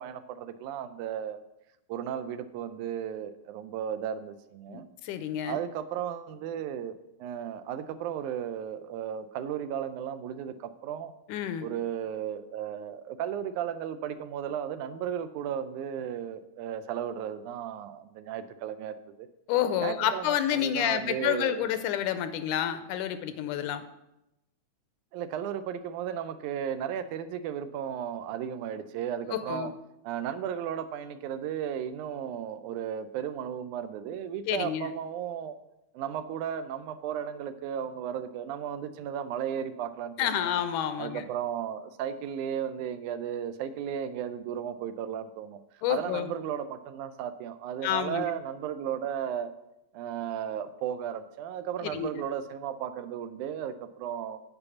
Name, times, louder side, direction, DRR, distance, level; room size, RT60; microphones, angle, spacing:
voice 1, 0.0-1.4 1.9-4.9 5.4-11.1 11.6-19.3 19.8-21.6 25.1-29.7 30.0-35.6 35.9-40.5 41.0-45.6 45.9-49.5 49.9-54.4, right 9 dB, 80° right, 11 dB, 2.0 m, -35 dB
voice 2, 4.7-5.6 11.3-11.7 19.5-23.9 29.3-29.7 34.5-34.9 40.2-41.2 45.8-46.3 47.8-48.3 51.8-52.1, left 10 dB, 85° left, 11 dB, 2.1 m, -29 dB
8.4 x 5.3 x 7.0 m, 0.89 s
omnidirectional pair, 3.5 m